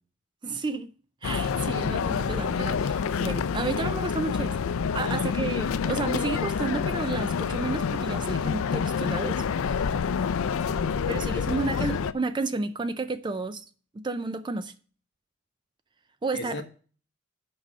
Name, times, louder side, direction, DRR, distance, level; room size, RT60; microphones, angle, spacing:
voice 1, 0.4-0.9 1.2-4.7 4.9-9.9 11.1-13.6 13.9-14.7 16.2-16.6, right 3 dB, 20° right, 0.3 m, -32 dB
sound 1, 1.2-12.1, left 6 dB, 70° left, 0.4 m, -27 dB
voice 2, 4.9-5.5 10.6-11.7 16.3-16.6, left 2 dB, 55° left, 1.0 m, -39 dB
6.5 x 4.8 x 6.1 m
head